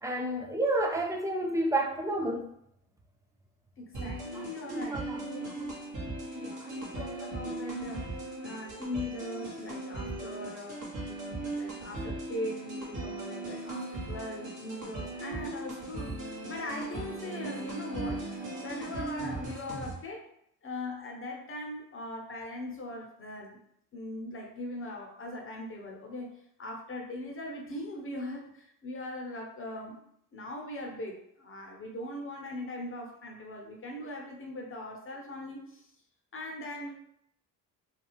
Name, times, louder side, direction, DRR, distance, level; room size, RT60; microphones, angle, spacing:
voice 1, 0.0-2.5 4.3-5.2 5.6-5.7, right 1 dB, 10° right, 1 dB, 0.4 m, -30 dB
voice 2, 3.8-5.9 6.3-8.2 8.4-20.2 20.6-23.6 23.9-26.3 26.6-30.0 30.3-35.9 36.3-36.9, left 1 dB, 25° left, 1 dB, 0.8 m, -40 dB
sound 1, 3.9-19.9, right 2 dB, 40° right, 1.1 m, -38 dB
2.5 x 2.3 x 3.1 m, 0.72 s
hypercardioid pair, 50°, 47 cm